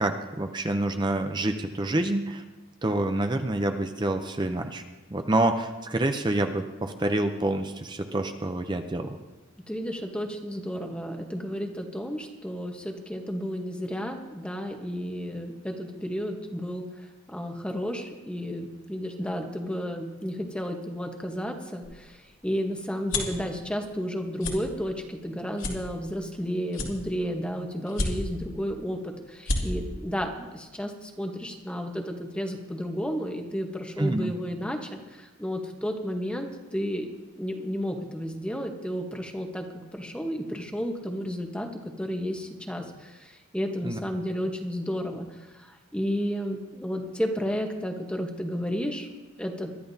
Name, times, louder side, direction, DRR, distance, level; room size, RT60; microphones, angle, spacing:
voice 1, 0.0-2.4 2.8-4.8 5.1-9.2 34.0-34.3 43.8-44.0, right 2 dB, 20° right, 7 dB, 0.6 m, -27 dB
voice 2, 9.7-37.1 37.4-39.7 39.9-41.7 42.0-49.1 49.4-49.7, equal, 5° left, 3 dB, 1.0 m, -32 dB
sound 1, 21.8-23.4 23.9-24.1 24.4-24.6 25.1-25.2 25.6-26.4 26.7-27.4 27.9-28.5 29.0-29.1 29.3-29.6, left 2 dB, 75° left, 2.5 m, -30 dB
22.5 x 12.5 x 2.7 m, 1.1 s
head